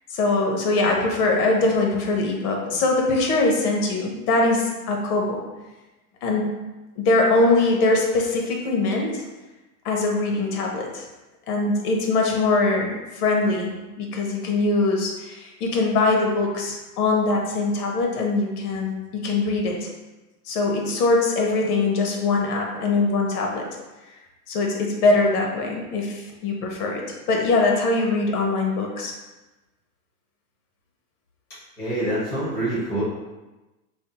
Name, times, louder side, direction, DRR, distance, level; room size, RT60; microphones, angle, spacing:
voice 1, 0.1-5.4 6.2-6.5 7.0-9.2 9.8-11.0 11.5-19.9 20.5-23.7 24.5-27.0 27.3-29.1, left 3 dB, 70° left, 0 dB, 0.8 m, -22 dB
voice 2, 31.8-33.0, right 1 dB, 5° left, -11 dB, 0.4 m, -26 dB
2.6 x 2.0 x 3.9 m, 1.1 s
supercardioid pair, 170°, 47 cm